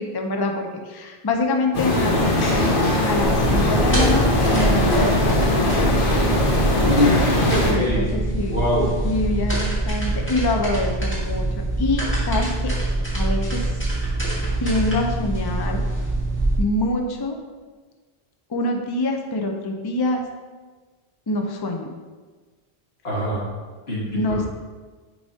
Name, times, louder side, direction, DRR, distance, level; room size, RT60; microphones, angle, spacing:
voice 1, 0.0-2.7 3.0-6.2 7.6-8.7 9.0-11.5 11.8-12.5 13.1-13.7 14.6-15.8 16.6-17.4 18.5-20.2 21.3-21.9 24.1-24.5, left 2 dB, 30° left, 3 dB, 0.6 m, -25 dB
sound 1, 1.7-7.7, left 1 dB, 60° left, 1.2 m, -20 dB
sound 2, 3.2-16.6, right 2 dB, 10° left, 1.8 m, -24 dB
voice 2, 6.8-8.1 8.5-8.9 23.0-23.4 23.9-24.0, left 1 dB, 80° left, -5 dB, 2.0 m, -23 dB
9.5 x 4.7 x 2.8 m, 1.4 s
omnidirectional pair, 1.0 m